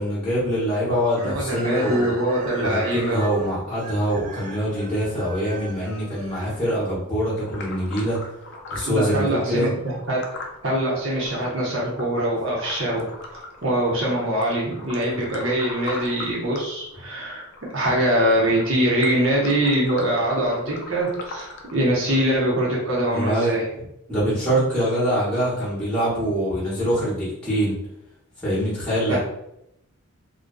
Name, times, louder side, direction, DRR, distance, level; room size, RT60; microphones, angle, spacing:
voice 1, 0.0-2.1 2.6-8.2 8.7-9.7 23.1-23.5 24.1-27.8 28.4-29.2, equal, 5° left, -9 dB, 0.8 m, -24 dB
Chicken rooster, 1.1-7.1, right 1 dB, 35° right, 0.5 m, -38 dB
voice 2, 1.2-3.3 8.9-10.2 10.6-13.1 13.6-17.5 17.7-23.7 29.1-29.2, right 1 dB, 60° right, -4 dB, 0.8 m, -23 dB
sound 1, 7.4-22.4, left 3 dB, 50° left, 0.4 m, -40 dB
2.5 x 2.2 x 2.2 m, 0.79 s
head